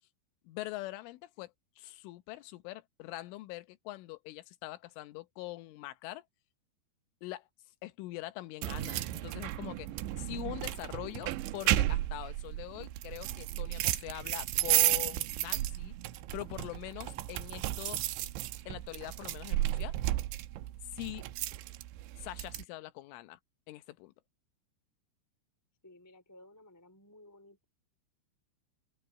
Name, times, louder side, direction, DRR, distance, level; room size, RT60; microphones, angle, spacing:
voice 1, 0.4-6.2 7.2-7.5 7.8-9.9 10.2-15.9 16.3-18.0 18.7-20.0 20.8-21.2 22.2-23.4 23.7-24.1, left 17 dB, 85° left, 3.5 m, -43 dB
sound 1, 8.6-22.6, right 15 dB, 80° right, 2.9 m, -33 dB
voice 2, 25.8-27.6, left 1 dB, 5° left, 3.0 m, -56 dB
open air
omnidirectional pair, 5.6 m